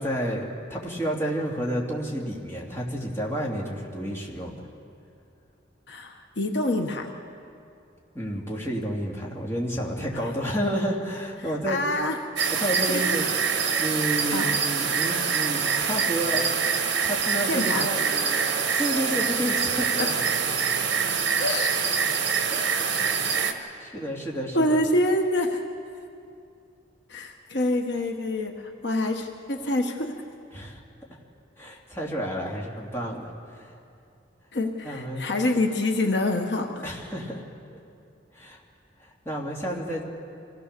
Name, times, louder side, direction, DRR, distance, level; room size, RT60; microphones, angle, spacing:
voice 1, 0.0-4.6 8.1-11.8 12.6-13.4 13.8-16.5 17.0-18.4 18.8-20.1 22.4-22.7 23.4-24.8 30.5-30.7 31.6-33.7 34.8-35.2 36.8-37.4 38.3-38.6 39.0-40.0, equal, 15° left, -3 dB, 2.7 m, -30 dB
voice 2, 5.9-7.1 10.1-10.3 11.7-12.2 12.8-13.0 14.3-14.5 17.5-17.9 21.4-21.7 24.5-25.6 27.1-30.1 34.5-36.7, left 1 dB, 65° left, 3 dB, 1.2 m, -26 dB
sound 1, 12.4-23.5, right 6 dB, 60° right, 1.5 m, -25 dB
26.0 x 17.0 x 6.8 m, 2.5 s
head